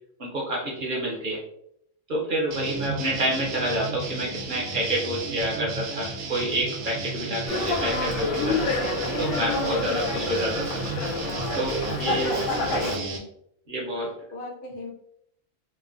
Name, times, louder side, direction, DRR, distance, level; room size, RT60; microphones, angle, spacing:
voice 1, 0.2-1.4 2.1-8.7 9.2-10.8 11.5-12.4 13.7-14.1, right 1 dB, 50° right, -2 dB, 0.7 m, -28 dB
sound 1, 2.5-13.2, right 3 dB, 85° right, 1.0 m, -34 dB
Dog, 7.5-13.0, left 2 dB, 70° left, 1.0 m, -28 dB
voice 2, 9.6-10.0 12.1-13.3 14.3-14.9, left 1 dB, 55° left, -1 dB, 0.7 m, -38 dB
3.1 x 2.0 x 2.4 m, 0.73 s
omnidirectional pair, 1.3 m